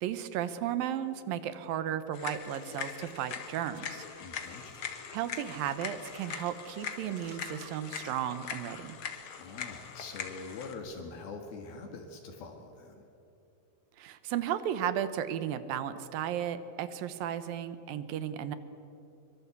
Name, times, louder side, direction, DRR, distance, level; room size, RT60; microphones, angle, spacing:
voice 1, 0.0-4.0 5.1-9.0 14.0-18.6, right 10 dB, 75° right, 12 dB, 2.6 m, -34 dB
sound 1, 2.1-10.7, left 7 dB, 50° left, 1.6 m, -42 dB
sound 2, 2.3-8.2, right 5 dB, 40° right, 1.9 m, -58 dB
voice 2, 4.2-4.9 9.4-13.1, left 4 dB, 75° left, 3 dB, 3.6 m, -44 dB
24.0 x 23.5 x 8.3 m, 2.9 s
omnidirectional pair, 4.4 m